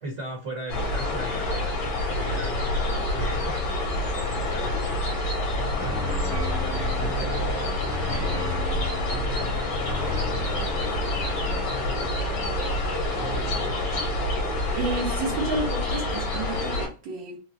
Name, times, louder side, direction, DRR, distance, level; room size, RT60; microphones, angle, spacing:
voice 1, 0.0-6.2 6.7-14.0, equal, 45° right, 1.3 m, -39 dB
sound 1, 0.7-16.9, left 1 dB, 85° left, 2.2 m, -27 dB
sound 2, 5.6-14.7, left 1 dB, 30° right, 0.3 m, -37 dB
voice 2, 14.7-17.4, right 3 dB, 85° right, 1.7 m, -30 dB
4.9 x 2.1 x 2.7 m
omnidirectional pair, 2.1 m